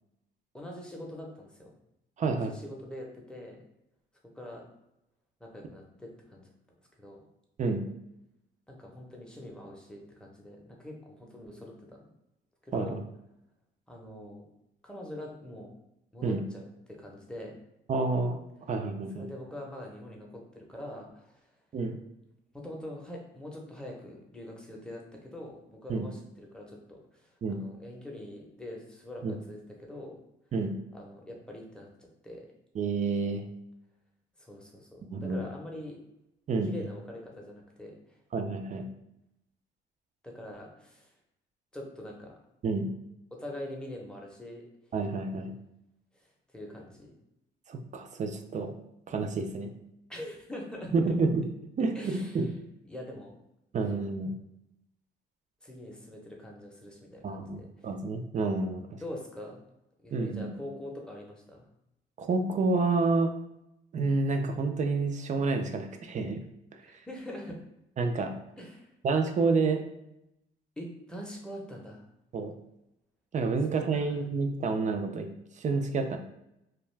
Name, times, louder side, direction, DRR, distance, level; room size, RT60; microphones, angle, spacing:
voice 1, 0.5-1.7 2.2-3.6 4.3-4.7 5.4-6.5 7.0-7.2 8.7-12.0 12.6-13.0 13.9-14.4 14.8-15.7 16.1-17.5 19.1-21.5 22.5-30.2 30.9-32.5 34.4-36.0 36.6-38.2 40.2-41.1 41.7-42.4 43.3-44.6 46.1-46.3 46.5-47.1 50.1-50.9 51.9-52.5 52.9-53.3 55.6-57.4 57.8-57.9 59.0-59.6 60.0-61.7 66.8-67.6 68.6-68.9 70.8-72.0 73.6-73.7 73.9-74.2, left 1 dB, 5° left, -1 dB, 0.7 m, -44 dB
voice 2, 2.2-2.5 7.6-7.8 12.7-13.0 16.2-16.4 17.9-18.4 18.7-19.3 21.7-22.0 25.9-26.1 27.4-27.6 29.2-29.3 30.5-30.7 32.8-33.4 35.1-35.5 36.5-36.9 38.3-38.9 42.6-42.9 44.9-45.5 47.7-48.7 49.1-49.7 50.9-51.5 51.8-52.5 53.7-54.3 57.2-59.0 60.1-60.5 62.2-63.3 63.9-66.4 68.0-68.3 69.0-69.8 72.3-72.5 73.3-75.3 75.6-76.2, right 3 dB, 40° right, 5 dB, 0.4 m, -29 dB
2.3 x 2.3 x 3.2 m, 0.85 s
cardioid pair, 85°, 20 cm